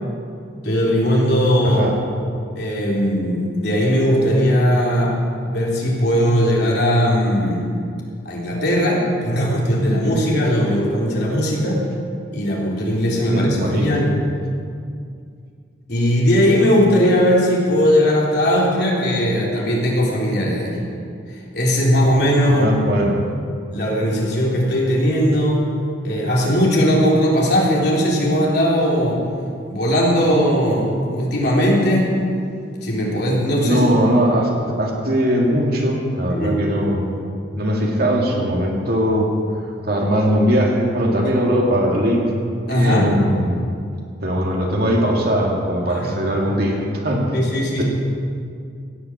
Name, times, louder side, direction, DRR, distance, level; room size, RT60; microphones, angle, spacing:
voice 1, 0.6-1.9 2.6-7.7 8.3-11.8 12.3-14.1 15.9-20.8 21.5-22.8 23.7-25.7 26.0-29.2 29.7-32.1 32.8-33.8 36.3-36.6 42.7-43.1 45.9-46.1 47.3-47.8, equal, 60° left, -3 dB, 3.6 m, -18 dB
voice 2, 1.6-1.9 13.3-14.1 22.4-23.1 33.6-34.5 34.8-37.1 37.6-39.4 39.9-42.3 42.7-43.6 44.2-47.3 47.8-47.9, equal, 50° right, -1 dB, 2.4 m, -20 dB
16.5 x 9.6 x 7.4 m, 2.3 s
head